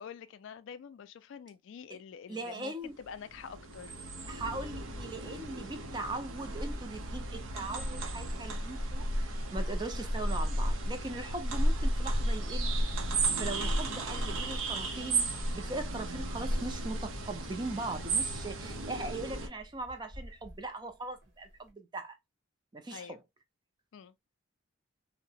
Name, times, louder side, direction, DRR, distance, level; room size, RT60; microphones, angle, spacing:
voice 1, 0.0-4.0 22.9-23.2 23.9-24.1, left 7 dB, 65° left, 0.3 m, -47 dB
voice 2, 2.3-3.0 4.3-12.9 13.4-22.2 22.7-23.2, right 2 dB, 20° right, 0.4 m, -40 dB
sound 1, 3.0-19.5, right 1 dB, 80° right, 0.6 m, -33 dB
sound 2, 15.6-21.7, equal, 60° right, 1.0 m, -55 dB
2.7 x 2.1 x 2.7 m
head